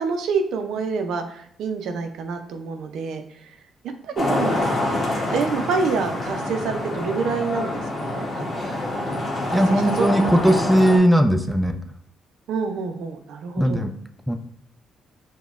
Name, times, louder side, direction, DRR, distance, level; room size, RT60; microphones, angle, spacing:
voice 1, 0.0-3.6 4.0-4.6 5.3-8.4 9.5-10.5 12.5-13.9, right 5 dB, 80° right, 6 dB, 0.4 m, -27 dB
Traffic noise roadway noise, 4.2-11.0, left 1 dB, 40° left, 0.9 m, -26 dB
voice 2, 9.5-11.8 13.6-13.9 14.3-14.4, equal, ahead, 6 dB, 0.3 m, -18 dB
4.9 x 2.1 x 2.4 m, 0.64 s
cardioid pair, 90°, 0 cm